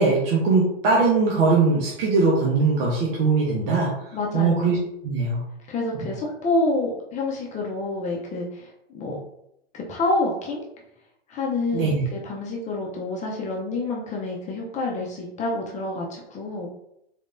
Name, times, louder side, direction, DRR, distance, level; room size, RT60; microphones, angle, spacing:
voice 1, 0.0-4.8 5.0-5.4 11.7-12.0, right 4 dB, 65° right, -4 dB, 1.2 m, -21 dB
voice 2, 4.1-4.7 5.7-9.2 9.7-10.6 11.3-16.7, left 2 dB, 20° left, -2 dB, 0.7 m, -28 dB
4.1 x 3.3 x 2.6 m, 0.77 s
hypercardioid pair, 125°, 32 cm